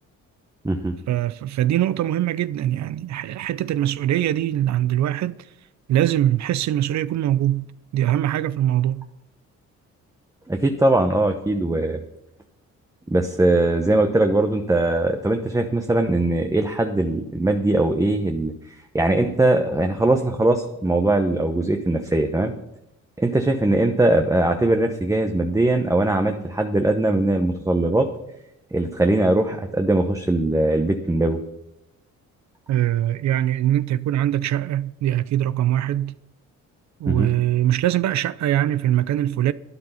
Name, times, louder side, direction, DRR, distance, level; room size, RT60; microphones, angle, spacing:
voice 1, 1.1-5.4 5.9-7.7 7.9-9.1 32.7-36.2 37.0-39.5, right 12 dB, 65° right, 0.6 m, -22 dB
voice 2, 10.5-12.0 13.1-22.5 23.2-28.1 28.7-31.4 37.1-37.3, right 2 dB, 10° right, 0.9 m, -21 dB
12.0 x 9.5 x 5.6 m
cardioid pair, 90°, 30 cm